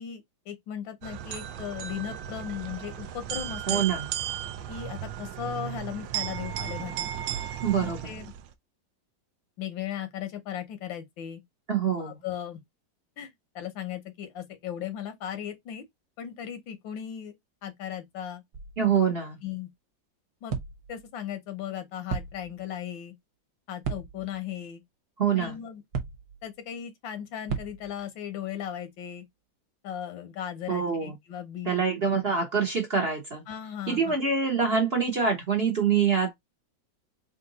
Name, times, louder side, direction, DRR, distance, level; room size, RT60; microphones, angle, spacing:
voice 1, 0.0-3.8 4.7-7.1 7.8-8.3 9.6-11.4 12.0-12.6 13.2-15.8 16.2-17.3 17.6-18.4 19.0-19.1 19.4-19.7 20.4-20.6 20.9-23.1 23.7-24.8 25.4-25.8 26.4-29.2 29.8-31.8 33.5-34.2, left 9 dB, 85° left, 1.7 m, -37 dB
sound 1, 1.0-8.5, right 11 dB, 80° right, 1.3 m, -35 dB
voice 2, 3.7-4.1 7.6-8.1 11.7-12.2 18.8-19.4 25.2-25.6 30.7-31.1 31.7-33.4 33.9-36.3, right 6 dB, 40° right, 0.9 m, -25 dB
sound 2, 18.5-19.1 20.5-21.1 22.1-22.7 23.8-24.4 25.9-26.5 27.5-28.1, right 6 dB, 60° right, 1.3 m, -35 dB
3.8 x 2.6 x 3.9 m
omnidirectional pair, 2.0 m